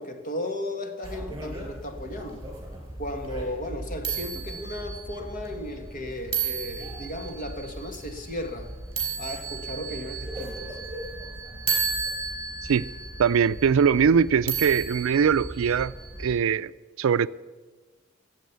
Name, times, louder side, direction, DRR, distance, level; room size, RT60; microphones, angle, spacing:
voice 1, 0.0-2.5 3.0-8.7 9.2-10.8, left 1 dB, 40° left, 1.6 m, -35 dB
sound 1, 1.0-16.3, right 4 dB, 15° right, 3.7 m, -34 dB
voice 2, 13.2-15.9 16.2-16.7 17.0-17.3, right 7 dB, 85° right, 0.4 m, -21 dB
14.5 x 7.6 x 9.3 m
head